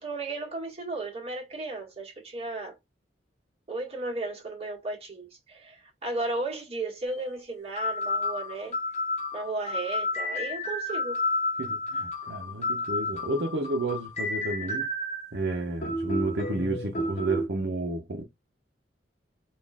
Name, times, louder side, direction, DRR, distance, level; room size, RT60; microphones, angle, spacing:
voice 1, 0.0-2.7 3.7-8.8 9.3-11.2, right 2 dB, 35° right, 1.8 m, -34 dB
sound 1, 7.1-7.2 7.8-15.3 15.8-17.5, left 2 dB, 40° left, 0.9 m, -31 dB
voice 2, 11.6-14.9 15.3-18.2, right 2 dB, 75° right, 0.8 m, -31 dB
4.2 x 2.5 x 3.5 m
head